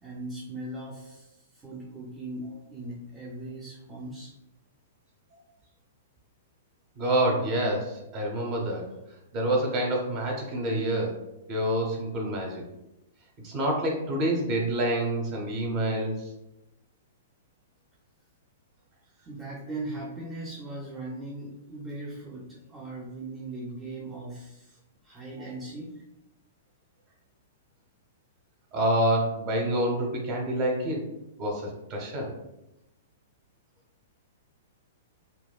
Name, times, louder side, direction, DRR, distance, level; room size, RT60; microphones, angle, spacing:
voice 1, 0.0-4.3 19.3-24.8 25.0-25.9, right 2 dB, 15° right, -4 dB, 0.6 m, -39 dB
voice 2, 7.0-8.9 9.3-11.1 11.5-12.6 13.4-16.3 28.7-31.0 31.4-32.3, right 1 dB, 40° right, 0 dB, 0.9 m, -27 dB
4.1 x 2.3 x 2.2 m, 0.91 s
figure-of-eight pair, 110°, 0 cm